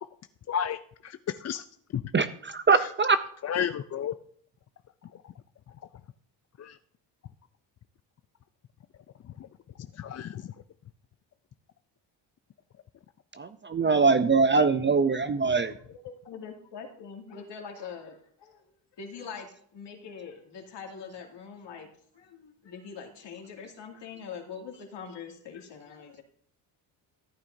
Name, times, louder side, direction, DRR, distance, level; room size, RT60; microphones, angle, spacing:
voice 1, 0.5-1.6 1.9-2.0 2.7-2.9 3.4-4.1 6.6-6.8 9.4-9.5 10.0-10.5, left 8 dB, 35° left, 10 dB, 0.5 m, -32 dB
voice 2, 2.1-3.2 13.4-15.7, right 4 dB, 25° right, 12 dB, 0.5 m, -23 dB
voice 3, 15.5-26.2, left 6 dB, 60° left, 1 dB, 2.6 m, -43 dB
14.0 x 8.6 x 2.7 m, 0.62 s
supercardioid pair, 80°, 47 cm